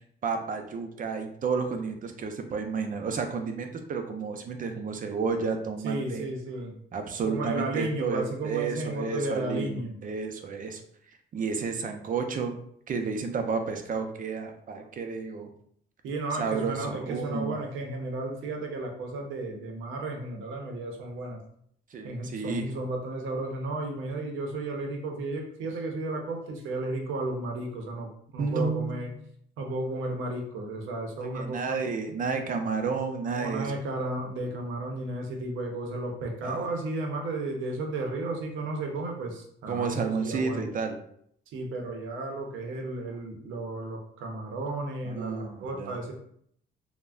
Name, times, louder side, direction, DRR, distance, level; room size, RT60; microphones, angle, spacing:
voice 1, 0.2-6.3 6.9-10.8 11.3-12.6 12.9-15.5 16.4-17.6 21.9-22.7 28.4-29.0 31.2-33.7 36.4-36.6 39.7-41.0 45.0-46.0, right 5 dB, 45° right, 6 dB, 0.5 m, -31 dB
voice 2, 5.8-6.8 7.2-10.0 16.0-21.4 22.0-29.1 29.6-31.8 33.3-40.7 41.5-46.1, right 2 dB, 90° right, 2 dB, 0.6 m, -33 dB
3.3 x 2.1 x 2.4 m, 0.67 s
cardioid pair, 90°, 20 cm